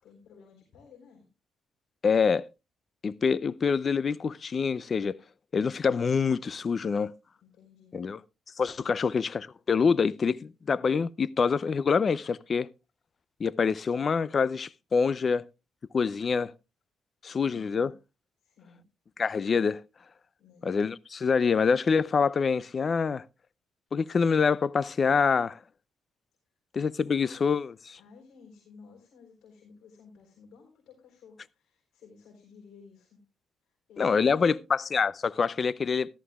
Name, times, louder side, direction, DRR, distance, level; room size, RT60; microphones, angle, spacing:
voice 1, 0.0-1.3 7.4-8.0 8.8-9.0 17.3-17.9 18.4-18.8 20.4-20.7 27.0-27.6 28.0-33.2 33.6-34.5, left 5 dB, 80° left, 3.9 m, -55 dB
voice 2, 2.0-2.4 3.0-5.2 5.5-7.1 7.9-8.2 8.6-12.7 13.4-15.4 15.9-16.5 17.2-17.9 19.2-19.8 20.6-23.2 23.9-25.6 26.7-27.7 34.0-36.1, left 5 dB, 40° left, 0.5 m, -26 dB
14.5 x 13.5 x 2.4 m
cardioid pair, 90°, 0 cm